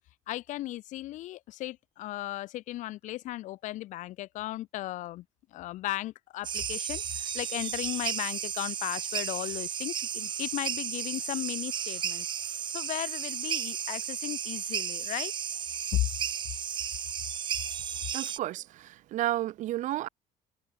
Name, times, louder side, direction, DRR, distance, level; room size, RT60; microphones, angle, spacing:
voice 1, 0.3-5.2 5.5-12.3 12.7-15.3 15.9-16.1, left 16 dB, 60° left, 0.5 m, -35 dB
sound 1, 6.4-18.4, right 8 dB, 35° right, 0.8 m, -34 dB
voice 2, 18.1-20.1, right 14 dB, 60° right, 1.2 m, -32 dB
cardioid pair, 175°, 14 cm